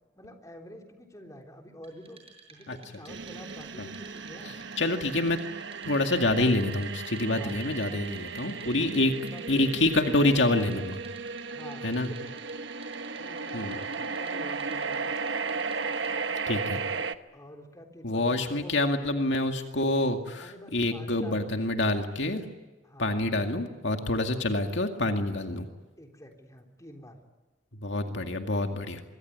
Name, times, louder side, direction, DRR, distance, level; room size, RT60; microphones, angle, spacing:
voice 1, 0.1-2.2 2.5-4.6 7.2-7.8 8.6-9.5 11.5-12.5 13.2-15.1 17.3-18.7 20.4-21.5 22.8-23.3 26.0-27.2, equal, 15° left, 3 dB, 3.5 m, -48 dB
Wood, 1.8-16.4, right 5 dB, 30° right, 7.4 m, -55 dB
sound 1, 3.1-17.1, right 4 dB, 70° right, 1.1 m, -35 dB
voice 2, 4.8-5.4 5.8-9.1 9.5-11.0 11.8-12.1 13.5-13.8 16.5-16.8 18.0-22.4 23.0-25.7 27.8-29.0, left 2 dB, 70° left, 4 dB, 2.2 m, -27 dB
25.0 x 24.0 x 9.5 m, 1.2 s
head